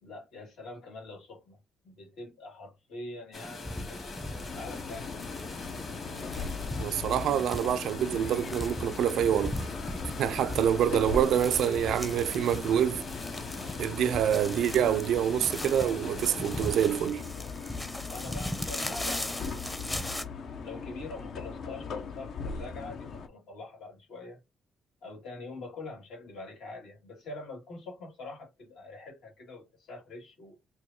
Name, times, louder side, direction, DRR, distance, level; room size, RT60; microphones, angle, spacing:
voice 1, 0.0-1.6 1.8-5.2 18.1-20.2 20.6-24.4 25.0-30.6, left 2 dB, 85° left, 2.1 m, -44 dB
sound 1, 3.3-17.1, left 3 dB, 50° left, 1.6 m, -42 dB
sound 2, 3.6-20.2, left 1 dB, 15° left, 0.6 m, -39 dB
sound 3, 4.5-23.3, left 5 dB, 65° left, 0.6 m, -39 dB
voice 2, 6.8-9.6 10.2-13.0 13.8-17.2, right 9 dB, 75° right, 0.3 m, -26 dB
4.7 x 2.2 x 2.7 m
cardioid pair, 90°, 0 cm